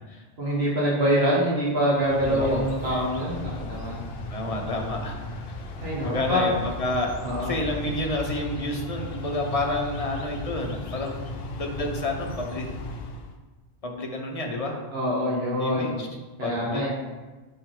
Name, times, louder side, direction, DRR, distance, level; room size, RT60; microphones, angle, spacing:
voice 1, 0.4-4.0 5.8-6.4 7.2-7.5 14.9-16.0 16.4-16.9, equal, 75° right, -6 dB, 1.8 m, -25 dB
sound 1, 2.0-13.4, left 2 dB, 70° left, 0.9 m, -36 dB
voice 2, 2.2-2.6 4.3-5.2 6.0-7.1 7.4-12.7 13.8-14.8 15.6-16.1 16.4-16.9, left 1 dB, 35° left, 1 dB, 0.9 m, -29 dB
6.3 x 5.3 x 3.8 m, 1.3 s
omnidirectional pair, 1.1 m